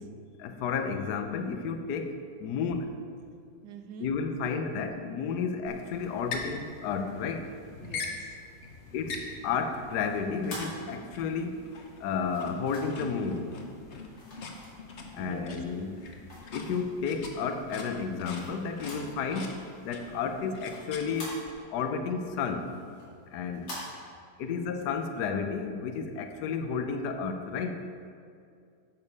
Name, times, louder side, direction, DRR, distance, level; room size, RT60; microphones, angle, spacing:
voice 1, 0.4-3.0 4.0-7.5 8.9-11.6 12.0-13.5 15.1-16.0 16.5-21.3 21.7-22.7 23.3-23.8 24.4-27.8, left 5 dB, 65° left, 7 dB, 1.2 m, -32 dB
voice 2, 3.6-4.2 7.8-8.4 15.2-15.6 20.1-20.5 24.5-24.6, right 7 dB, 70° right, 7 dB, 1.2 m, -46 dB
sound 1, 5.7-21.5, left 3 dB, 45° left, 1.0 m, -43 dB
sound 2, 10.0-11.4 12.2-13.1 14.1-15.2 15.7-17.1 17.6-19.2 19.5-19.6 19.9-21.8 22.2-23.8, left 1 dB, 85° left, 3.4 m, -45 dB
9.7 x 6.9 x 4.8 m, 2.3 s
omnidirectional pair, 2.0 m